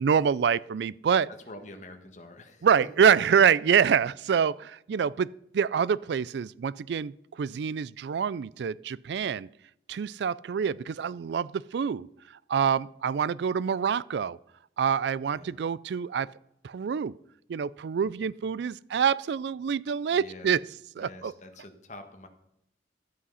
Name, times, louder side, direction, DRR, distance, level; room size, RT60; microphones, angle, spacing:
voice 1, 0.0-1.3 2.6-5.3 5.5-9.5 9.9-12.1 12.5-14.4 14.8-16.3 16.6-17.1 17.5-20.6 21.0-21.3, right 7 dB, 70° right, 22 dB, 0.3 m, -26 dB
voice 2, 1.5-2.7 15.3-15.6 20.1-20.5 21.0-22.3, left 2 dB, 40° left, 6 dB, 1.5 m, -46 dB
12.5 x 8.4 x 5.6 m, 0.77 s
head